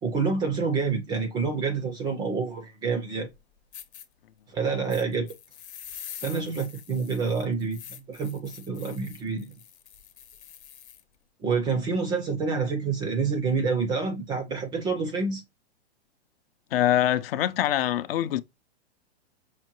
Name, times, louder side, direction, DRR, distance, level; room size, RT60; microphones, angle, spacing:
voice 1, 0.0-3.3 4.5-5.3 6.2-9.5 11.4-15.4, right 4 dB, 15° right, 0.3 m, -28 dB
sound 1, 3.3-3.4 3.7-4.1 4.9-11.0, left 9 dB, 85° left, 0.9 m, -45 dB
voice 2, 16.7-18.4, left 12 dB, 60° left, 0.5 m, -24 dB
5.7 x 2.2 x 2.9 m
hypercardioid pair, 135°, 33 cm